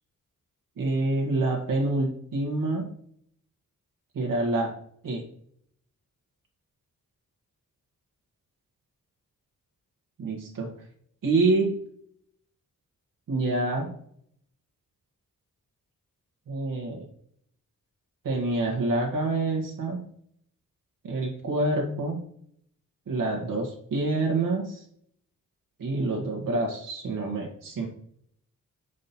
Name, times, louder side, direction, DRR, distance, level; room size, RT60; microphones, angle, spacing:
voice 1, 0.8-2.9 4.1-4.7 5.0-5.2 10.2-10.7 11.2-11.7 13.3-13.9 16.5-17.1 18.2-20.0 21.0-22.2 23.1-24.8 25.8-27.9, right 2 dB, 80° right, -1 dB, 1.6 m, -27 dB
5.4 x 5.2 x 4.2 m, 0.65 s
wide cardioid pair, 105°, 32 cm